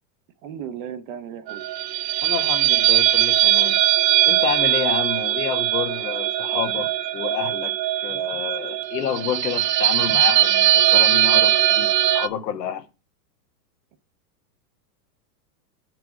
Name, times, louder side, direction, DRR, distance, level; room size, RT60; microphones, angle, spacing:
voice 1, 0.4-1.7, right 9 dB, 35° right, 0.6 m, -35 dB
sound 1, 1.5-12.3, right 13 dB, 80° right, 0.7 m, -20 dB
voice 2, 2.2-3.8 4.2-7.7 8.0-11.9 12.1-12.8, left 9 dB, 75° left, 1.4 m, -29 dB
7.8 x 4.8 x 4.9 m
supercardioid pair, 160°, 48 cm